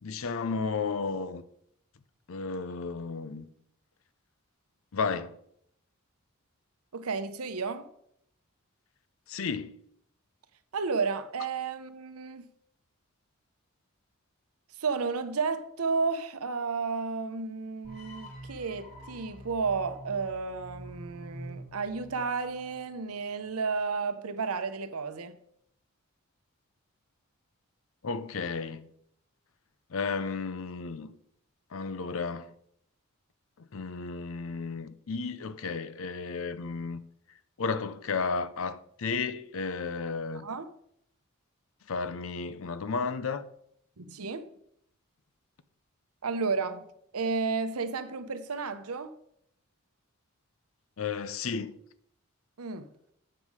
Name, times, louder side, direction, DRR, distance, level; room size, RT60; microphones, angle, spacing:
voice 1, 0.0-1.4 2.3-3.5 4.9-5.4 9.3-9.7 28.0-28.9 29.9-31.2 31.7-32.5 33.6-37.0 37.6-40.5 41.9-43.4 51.0-51.7, left 4 dB, 70° left, 0.5 m, -33 dB
voice 2, 6.9-7.9 10.7-12.5 14.8-25.4 40.3-40.7 44.0-44.5 46.2-46.8 47.1-49.2 52.6-52.9, right 4 dB, 85° right, 0.8 m, -32 dB
sound 1, 17.8-22.9, right 1 dB, 45° left, 2.2 m, -46 dB
7.7 x 7.2 x 4.8 m
head